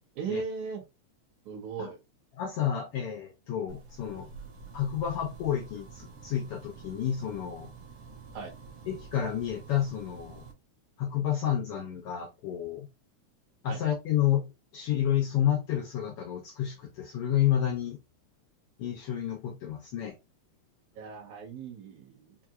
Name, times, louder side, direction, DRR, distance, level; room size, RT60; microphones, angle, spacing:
voice 1, 0.2-0.8 1.5-2.0 8.3-8.5 13.7-13.8 21.0-22.4, right 6 dB, 80° right, 2.7 m, -37 dB
voice 2, 2.4-4.3 4.7-7.7 8.9-10.4 11.0-12.9 13.6-18.0 18.8-20.2, left 10 dB, 70° left, 1.4 m, -30 dB
sound 1, 3.7-10.5, right 5 dB, 55° right, 1.8 m, -48 dB
5.8 x 2.8 x 2.4 m
omnidirectional pair, 3.3 m